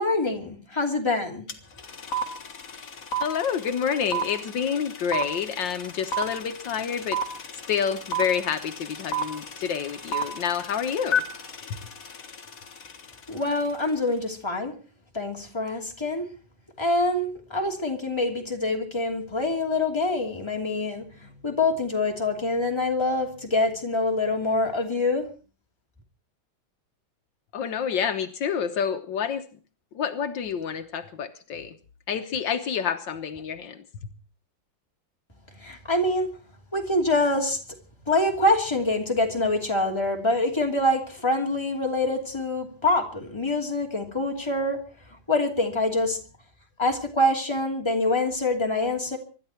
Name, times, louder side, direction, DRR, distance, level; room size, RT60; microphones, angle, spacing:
voice 1, 0.0-1.4 13.3-14.7 15.1-16.3 16.8-21.0 21.4-25.3 35.6-36.3 36.7-37.6 38.1-44.8 45.3-46.2 46.8-49.2, left 2 dB, 15° left, 1 dB, 2.9 m, -25 dB
sound 1, 1.5-1.6 1.8-13.0, right 1 dB, 50° left, 2.0 m, -30 dB
voice 2, 3.2-7.2 7.7-11.2 27.5-29.5 29.9-31.7 32.1-33.8, left 7 dB, 75° left, 8 dB, 1.7 m, -28 dB
25.5 x 12.0 x 4.5 m, 0.37 s
omnidirectional pair, 2.0 m